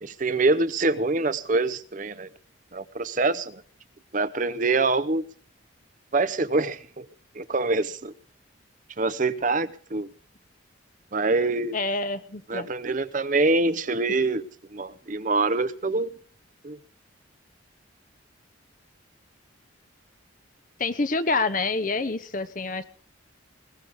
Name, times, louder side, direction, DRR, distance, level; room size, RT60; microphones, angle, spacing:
voice 1, 0.0-2.3 2.7-3.6 4.1-5.2 6.1-7.1 7.3-8.1 9.0-10.1 11.1-11.8 12.5-14.4 14.7-16.1 16.6-16.8, right 3 dB, 40° right, 0.7 m, -25 dB
voice 2, 11.7-12.7 20.8-22.8, left 3 dB, 40° left, 0.9 m, -27 dB
21.5 x 19.0 x 3.6 m
head